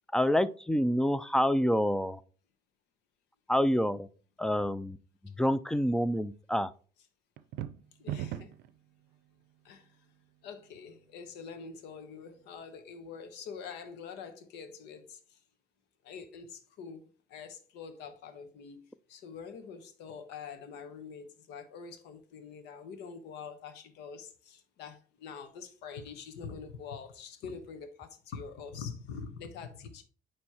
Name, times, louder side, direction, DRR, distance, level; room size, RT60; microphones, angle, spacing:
voice 1, 0.1-2.2 3.5-4.1 4.4-5.0 5.4-6.7, equal, 5° left, 0.4 m, -27 dB
sound 1, 7.4-8.7, right 12 dB, 80° right, 0.5 m, -37 dB
voice 2, 8.0-8.5 9.6-10.1 10.4-15.4 16.0-30.0, left 6 dB, 85° left, 1.1 m, -45 dB
9.3 x 3.2 x 4.3 m
cardioid pair, 110°, 17 cm